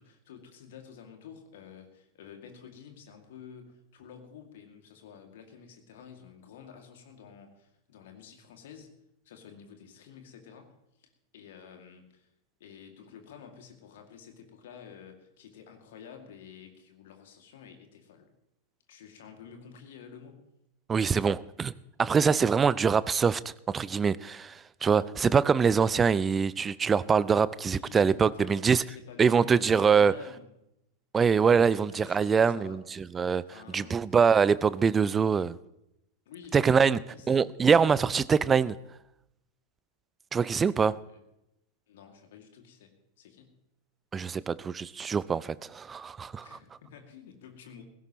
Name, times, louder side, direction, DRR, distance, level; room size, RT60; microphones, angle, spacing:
voice 1, 0.0-8.9 9.2-12.3 12.6-18.3 18.9-20.4 27.6-30.5 31.6-32.8 33.5-34.0 36.3-37.4 41.0-41.2 41.9-43.6 46.4-47.8, left 7 dB, 55° left, 2.3 m, -50 dB
voice 2, 20.9-21.7 22.0-23.4 23.7-28.8 29.2-30.1 31.1-32.8 33.1-33.4 33.7-35.6 36.5-37.0 37.3-38.7 40.3-40.9 44.1-46.5, right 6 dB, 20° right, 0.5 m, -24 dB
18.0 x 16.5 x 3.1 m
figure-of-eight pair, 90°, 0 cm